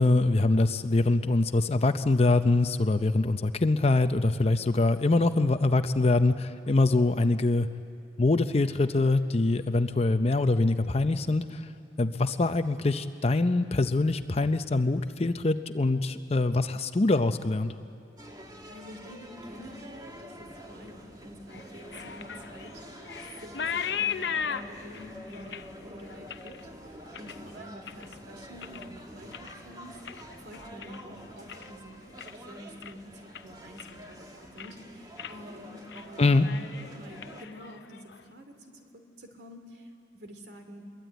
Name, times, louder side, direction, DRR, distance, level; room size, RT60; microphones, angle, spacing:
voice 1, 0.0-7.7 8.2-11.6 12.0-17.7 36.2-36.5, left 2 dB, 35° left, 10 dB, 0.6 m, -24 dB
sound 1, 18.2-37.4, equal, 20° right, 1.8 m, -47 dB
voice 2, 18.7-22.8 23.4-26.5 26.9-30.0 30.4-32.1 32.3-39.9 40.1-40.8, equal, 65° right, 5 dB, 2.8 m, -48 dB
sound 2, 21.5-28.2 28.5-29.0 29.3-31.7 32.0-32.5 32.8-32.9 33.3-34.1 34.4-34.8 35.2-35.4 35.7-36.1 36.3-38.2, left 7 dB, 70° left, 0.7 m, -38 dB
24.0 x 22.0 x 9.1 m, 2.7 s
head